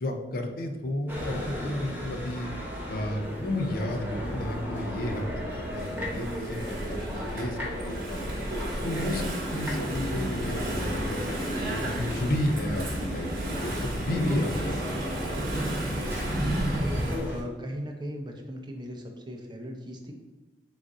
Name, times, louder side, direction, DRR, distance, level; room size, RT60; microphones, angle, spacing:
voice 1, 0.0-2.5 2.9-5.4 5.7-8.2 8.8-11.2 11.7-14.8 15.3-15.5, left 1 dB, 55° left, 5 dB, 0.5 m, -32 dB
sound 1, 1.1-17.4, equal, 10° right, 1.0 m, -36 dB
Engine / Mechanisms, 5.0-17.2, right 1 dB, 55° right, 1.0 m, -32 dB
voice 2, 17.1-20.1, left 1 dB, 25° right, 2 dB, 0.6 m, -37 dB
3.9 x 2.5 x 4.6 m, 1.2 s
head